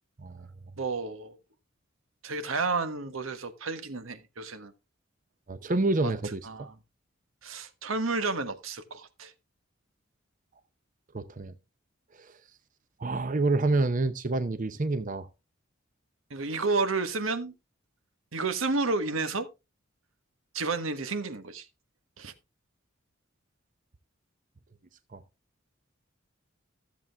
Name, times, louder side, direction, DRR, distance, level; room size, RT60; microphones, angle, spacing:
voice 1, 0.8-1.4 2.2-4.7 6.0-6.1 6.5-6.7 7.4-9.3 16.3-17.5 18.3-19.5 20.5-21.7 22.2-22.3, right 3 dB, 90° right, 1.3 m, -31 dB
voice 2, 5.5-6.7 11.1-11.5 12.1-12.4 13.0-15.3 25.1-25.2, right 2 dB, 40° right, 0.7 m, -28 dB
13.5 x 7.4 x 3.4 m
head